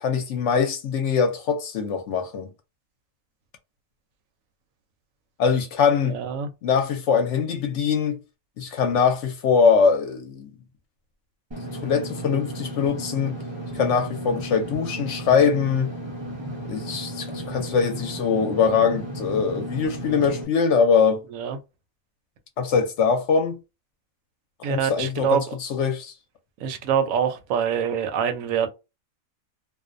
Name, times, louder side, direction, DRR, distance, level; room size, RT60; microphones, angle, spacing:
voice 1, 0.0-2.5 5.4-6.2 6.6-8.2 8.6-10.5 11.8-13.4 13.7-15.9 16.7-21.2 22.6-23.6 24.6-26.1, left 6 dB, 65° left, 0.8 m, -22 dB
voice 2, 6.0-6.5 21.3-21.6 24.6-25.6 26.6-28.7, right 7 dB, 75° right, 0.9 m, -25 dB
Engine / Mechanisms, 11.5-20.4, right 1 dB, 45° right, 0.3 m, -34 dB
2.5 x 2.1 x 2.4 m
omnidirectional pair, 1.4 m